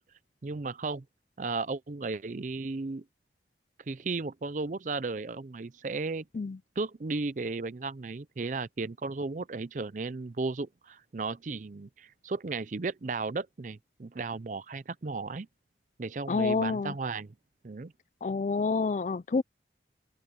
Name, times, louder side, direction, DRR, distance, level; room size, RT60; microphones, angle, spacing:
voice 1, 0.4-1.0 1.4-3.0 3.9-6.3 6.8-15.5 16.0-17.3 17.6-17.9, right 3 dB, 45° right, 0.5 m, -35 dB
voice 2, 16.3-16.9 18.2-19.4, left 4 dB, 40° left, 0.3 m, -28 dB
open air
head